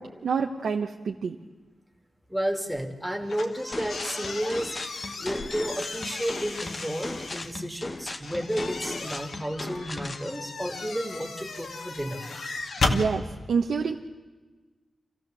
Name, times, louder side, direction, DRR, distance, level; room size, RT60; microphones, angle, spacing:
voice 1, 0.0-1.4 12.9-13.9, right 5 dB, 90° right, 2 dB, 1.2 m, -27 dB
voice 2, 2.3-4.8 5.2-12.2, equal, 5° right, 4 dB, 2.5 m, -32 dB
sound 1, 3.3-7.5 8.2-13.0, left 3 dB, 75° left, 2.5 m, -34 dB
sound 2, 3.7-10.3, left 2 dB, 30° left, 1.2 m, -37 dB
27.0 x 16.0 x 7.8 m, 1.3 s
wide cardioid pair, 120°, 0 cm